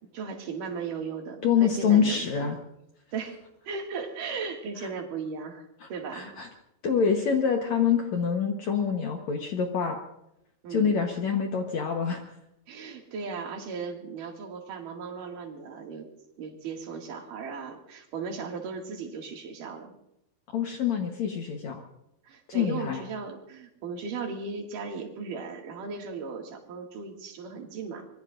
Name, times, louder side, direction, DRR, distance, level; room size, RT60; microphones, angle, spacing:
voice 1, 0.0-2.5 3.1-3.4 3.7-6.3 10.6-11.0 12.7-16.1 16.4-19.9 22.2-28.1, right 5 dB, 60° right, 2 dB, 3.5 m, -37 dB
voice 2, 1.4-2.6 4.8-4.9 5.8-6.5 6.8-10.0 10.7-12.2 20.5-21.8 22.5-23.0, left 7 dB, 65° left, 3 dB, 1.9 m, -26 dB
24.5 x 22.0 x 2.6 m, 0.81 s
omnidirectional pair, 4.6 m